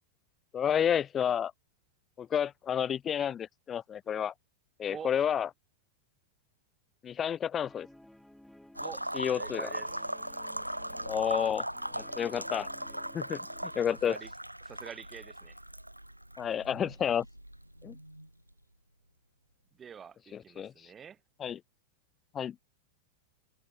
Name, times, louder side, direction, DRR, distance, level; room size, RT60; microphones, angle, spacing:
voice 1, 0.5-1.5 2.2-4.3 4.8-5.5 7.0-7.9 9.2-9.7 11.1-11.7 11.9-12.7 13.1-13.4 13.8-14.1 16.4-17.2 17.8-17.9 20.6-20.9 21.4-21.6 22.3-22.5, left 9 dB, 25° left, 0.5 m, -30 dB
Guitar, 7.6-14.2, left 1 dB, 5° left, 6.2 m, -56 dB
sound 1, 8.8-18.5, right 1 dB, 90° right, 0.4 m, -39 dB
voice 2, 9.3-10.0 14.0-14.3 14.6-15.6 19.7-21.2, right 7 dB, 20° right, 1.9 m, -46 dB
figure-of-eight pair, 90°, 0 cm